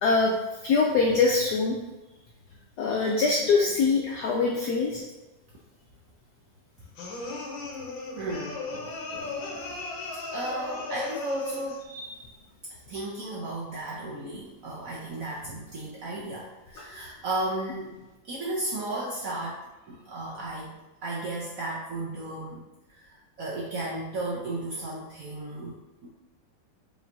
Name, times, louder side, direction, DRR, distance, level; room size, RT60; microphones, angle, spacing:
voice 1, 0.0-0.3 0.6-1.7 2.8-5.0 9.1-9.7 11.9-12.1, left 4 dB, 70° left, -2 dB, 1.0 m, -24 dB
sound 1, 7.0-11.9, left 3 dB, 90° left, 1.6 m, -36 dB
voice 2, 8.1-9.6 10.3-11.8 12.9-18.0 18.2-22.6 22.9-26.1, right 2 dB, 65° right, -5 dB, 0.8 m, -35 dB
4.9 x 3.2 x 2.6 m, 1.0 s
omnidirectional pair, 2.1 m